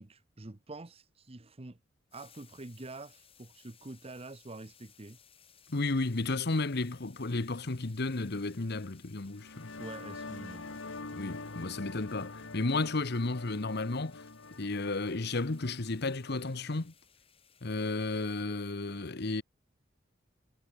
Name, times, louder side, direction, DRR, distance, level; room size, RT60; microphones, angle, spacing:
voice 1, 0.0-1.8 2.1-5.2 9.8-10.7, right 2 dB, 30° right, 0.9 m, -46 dB
sound 1, 2.1-18.4, left 8 dB, 30° left, 4.6 m, -63 dB
voice 2, 5.7-9.7 11.1-14.2 14.5-16.9 17.6-19.4, left 3 dB, 55° left, 1.1 m, -33 dB
sound 2, 9.3-16.7, left 3 dB, 80° left, 1.6 m, -45 dB
head